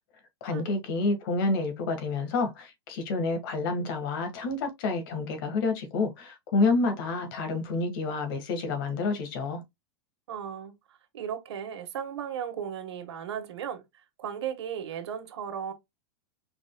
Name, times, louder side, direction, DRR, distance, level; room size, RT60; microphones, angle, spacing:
voice 1, 0.4-9.6, left 3 dB, 55° left, 1.5 m, -29 dB
voice 2, 10.3-13.8 14.2-15.7, right 8 dB, 85° right, 1.3 m, -36 dB
4.6 x 4.1 x 2.2 m
supercardioid pair, 150°, 14 cm